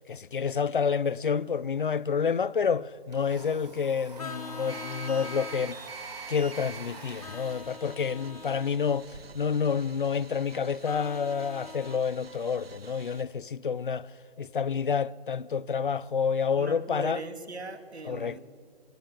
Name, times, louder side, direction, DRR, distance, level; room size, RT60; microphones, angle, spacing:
voice 1, 0.1-5.8 6.3-9.1 9.3-14.1 14.4-17.2 18.1-18.4, left 6 dB, 55° left, 0.6 m, -29 dB
Domestic sounds home sounds, 2.6-9.2, right 3 dB, 40° right, 6.3 m, -47 dB
Vehicle horn car horn honking, 4.2-5.7 7.2-8.7 10.8-12.0, left 5 dB, 35° left, 1.4 m, -43 dB
AT&T Cordless Phone with computer noise AM Radio, 4.7-13.2, right 6 dB, 65° right, 1.3 m, -47 dB
voice 2, 16.6-18.4, right 3 dB, 85° right, 2.8 m, -40 dB
26.5 x 19.5 x 9.3 m
hypercardioid pair, 170°, 32 cm